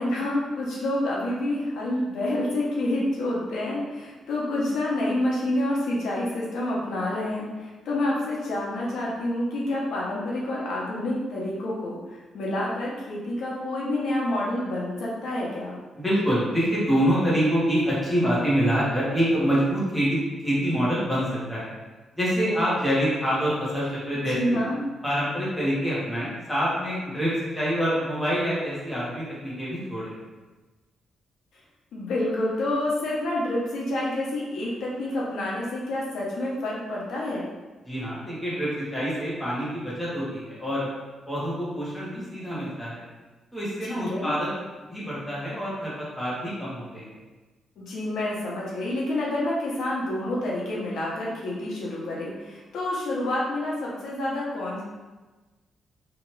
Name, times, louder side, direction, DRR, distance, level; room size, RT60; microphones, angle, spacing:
voice 1, 0.0-15.8 24.3-24.8 31.9-37.5 43.9-44.3 47.8-54.8, left 1 dB, 75° left, -5 dB, 0.7 m, -28 dB
voice 2, 16.0-21.7 22.1-24.6 25.0-30.1 37.9-40.9 41.3-43.0 43.5-44.5 44.9-47.1, equal, 5° left, -9 dB, 0.9 m, -26 dB
2.8 x 2.4 x 3.1 m, 1.2 s
cardioid pair, 175°, 0 cm